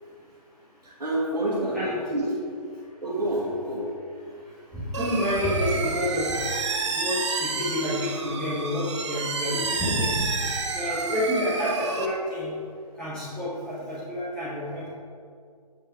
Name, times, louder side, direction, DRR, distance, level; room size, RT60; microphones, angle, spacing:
voice 1, 0.8-2.3 3.0-3.9, right 1 dB, 75° right, -5 dB, 1.9 m, -28 dB
voice 2, 1.4-2.0 4.2-12.5 13.0-14.9, left 1 dB, 5° left, -13 dB, 1.2 m, -29 dB
sound 1, 4.9-12.1, right 4 dB, 45° right, 0.9 m, -30 dB
8.0 x 5.4 x 4.9 m, 2.3 s
figure-of-eight pair, 145°, 21 cm